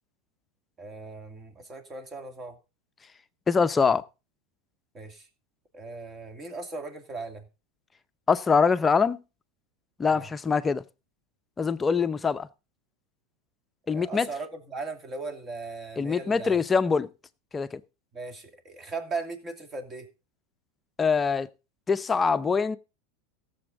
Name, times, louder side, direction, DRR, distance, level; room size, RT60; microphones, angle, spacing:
voice 1, 0.8-2.6 4.9-5.3 5.7-7.4 10.1-10.2 13.9-16.6 18.1-20.1, right 3 dB, 25° right, 2.4 m, -38 dB
voice 2, 3.5-4.0 8.3-9.2 10.0-10.8 11.6-12.5 13.9-14.3 16.0-17.1 17.5-17.8 21.0-21.5 21.9-22.8, left 5 dB, 20° left, 0.7 m, -23 dB
16.0 x 7.2 x 3.9 m
hypercardioid pair, 100°, 0 cm